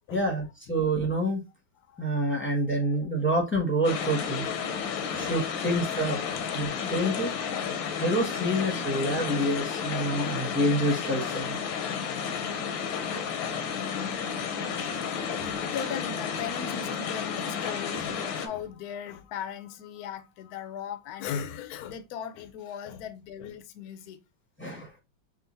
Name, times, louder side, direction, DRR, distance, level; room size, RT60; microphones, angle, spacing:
voice 1, 0.1-1.4 2.0-4.5 5.1-6.2 6.5-7.3 8.0-11.6 13.1-13.3 14.1-14.2 24.6-24.9, right 1 dB, 10° left, 0.9 m, -27 dB
voice 2, 1.9-2.9 4.4-4.5 5.1-5.3 6.3-6.8 14.8-24.2, left 8 dB, 70° left, 1.0 m, -38 dB
sound 1, 3.8-18.5, left 7 dB, 85° left, 1.5 m, -32 dB
6.3 x 2.5 x 2.6 m
omnidirectional pair, 2.1 m